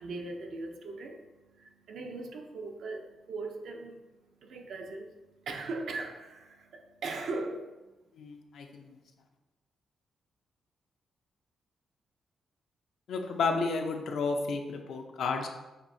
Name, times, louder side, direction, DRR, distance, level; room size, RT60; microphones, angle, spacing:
voice 1, 0.0-7.9, right 3 dB, 75° right, 3 dB, 0.6 m, -40 dB
voice 2, 8.1-9.0 13.1-15.5, left 4 dB, 80° left, 3 dB, 0.5 m, -32 dB
6.6 x 2.7 x 2.7 m, 1.1 s
wide cardioid pair, 135°, 0 cm